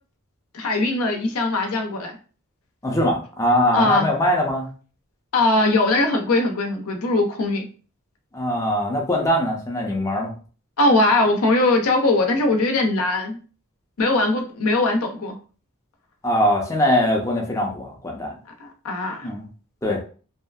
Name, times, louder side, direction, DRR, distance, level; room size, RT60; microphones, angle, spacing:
voice 1, 0.5-2.1 3.7-4.1 5.3-7.7 10.8-13.4 14.0-15.3 18.6-19.3, left 2 dB, 80° left, 3 dB, 0.6 m, -20 dB
voice 2, 2.8-4.7 8.3-10.3 16.2-18.4 19.2-19.5 19.8-20.0, equal, 15° left, -1 dB, 0.5 m, -22 dB
2.7 x 2.4 x 2.3 m, 0.38 s
head